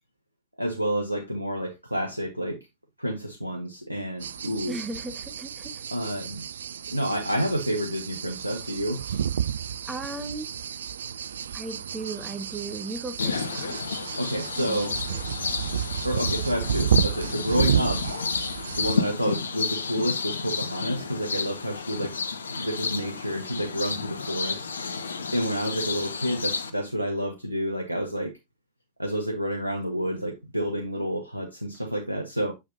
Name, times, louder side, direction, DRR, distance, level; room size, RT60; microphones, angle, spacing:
voice 1, 0.6-2.7 3.0-4.8 5.9-6.5 6.9-9.3 14.2-15.0 16.0-18.0 18.8-22.2 22.5-24.7 25.3-28.4 29.0-32.5, equal, 90° right, 0.7 m, -29 dB
sound 1, 4.2-19.0, right 8 dB, 65° right, 0.3 m, -31 dB
voice 2, 4.7-5.8 9.8-10.5 11.5-13.8 14.6-14.8 15.1-15.2, right 3 dB, 15° right, 1.4 m, -36 dB
sound 2, 13.2-26.7, left 5 dB, 75° left, 0.7 m, -31 dB
6.9 x 6.5 x 2.6 m
figure-of-eight pair, 90°, 0 cm